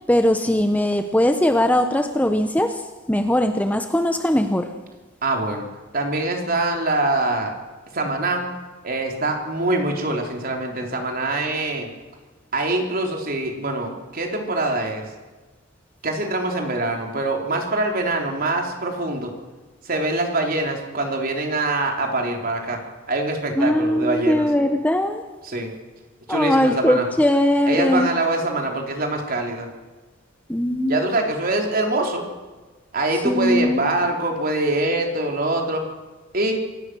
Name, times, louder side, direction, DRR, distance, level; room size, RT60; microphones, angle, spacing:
voice 1, 0.1-4.7 23.6-25.2 26.3-28.1 30.5-31.0 33.2-33.8, left 1 dB, 10° left, 7 dB, 1.0 m, -20 dB
voice 2, 5.2-5.7 5.9-7.5 7.9-8.5 8.8-11.9 12.5-15.1 16.0-19.3 19.8-22.8 23.1-24.5 25.4-25.7 26.3-27.1 27.7-29.7 30.9-32.2 32.9-35.8 36.3-36.5, right 2 dB, 45° right, 2 dB, 3.8 m, -24 dB
26.5 x 17.5 x 6.3 m, 1.3 s
head